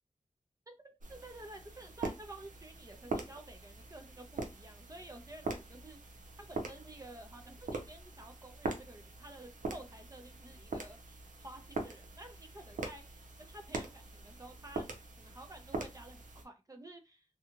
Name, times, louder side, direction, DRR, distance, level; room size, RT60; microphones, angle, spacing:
voice 1, 0.7-6.0 6.5-14.9 15.2-17.2, right 2 dB, 25° right, 4 dB, 0.5 m, -51 dB
sound 1, 1.0-16.4, right 3 dB, 85° right, 0.6 m, -43 dB
2.7 x 2.3 x 2.8 m, 0.26 s
wide cardioid pair, 80°, 13 cm